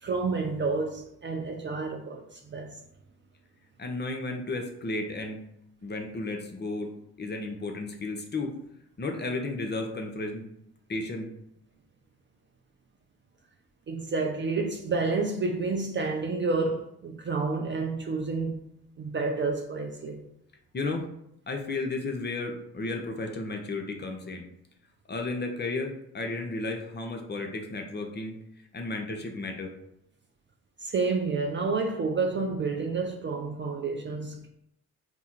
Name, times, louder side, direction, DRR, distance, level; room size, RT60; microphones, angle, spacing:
voice 1, 0.0-2.8 13.9-18.6 19.0-20.2 30.8-34.5, right 4 dB, 25° right, 0.5 m, -29 dB
voice 2, 3.8-5.5 5.8-6.9 7.2-8.5 9.0-10.5 10.9-11.3 20.7-21.0 21.5-24.4 25.1-28.4 28.7-29.7, left 2 dB, 25° left, 0.7 m, -33 dB
3.5 x 2.2 x 4.4 m
figure-of-eight pair, 45°, 44 cm